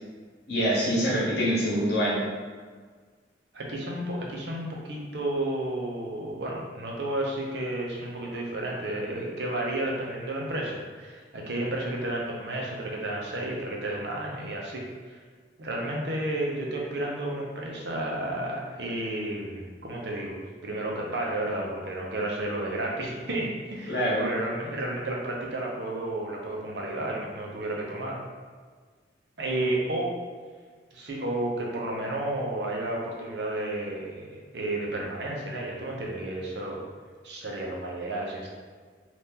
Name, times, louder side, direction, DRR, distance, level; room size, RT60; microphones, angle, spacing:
voice 1, 0.5-2.2 23.9-24.2, equal, 70° left, -6 dB, 1.1 m, -25 dB
voice 2, 3.5-14.9 15.6-28.2 29.4-30.1 30.9-36.8 37.2-38.5, right 1 dB, 75° right, -2 dB, 0.7 m, -32 dB
2.8 x 2.5 x 3.6 m, 1.5 s
head